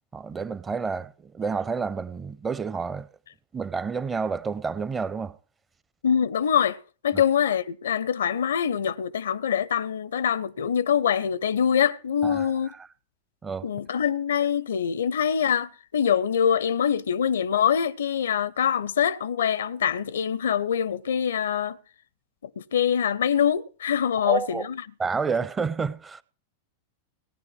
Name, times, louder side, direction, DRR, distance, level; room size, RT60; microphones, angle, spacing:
voice 1, 0.1-3.1 3.5-5.4 7.1-7.2 12.2-12.5 13.4-13.6 24.2-24.7 25.0-26.2, right 5 dB, 20° right, 0.6 m, -29 dB
voice 2, 6.0-12.7 13.6-21.8 22.4-24.8, left 8 dB, 65° left, 0.5 m, -24 dB
18.0 x 9.6 x 4.7 m
figure-of-eight pair, 90°, 0 cm